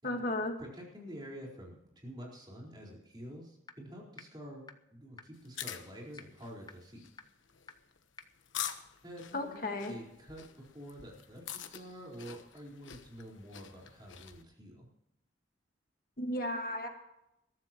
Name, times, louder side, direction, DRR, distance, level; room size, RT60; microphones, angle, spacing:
voice 1, 0.0-0.5 9.3-9.9 16.2-16.9, left 1 dB, 50° left, 4 dB, 1.7 m, -34 dB
voice 2, 0.6-7.0 9.0-10.4 10.7-14.9, equal, 25° right, -2 dB, 4.4 m, -48 dB
sound 1, 3.7-3.8 4.2-4.3 4.7-4.8 5.2-5.3 5.7-5.8 6.2-6.3 6.7-6.8 7.2-7.3 7.7-7.8 8.2-8.3 8.7-8.8, left 4 dB, 20° left, 0.6 m, -48 dB
sound 2, 5.4-14.4, left 10 dB, 80° left, 1.1 m, -46 dB
21.5 x 13.5 x 3.0 m, 0.85 s
head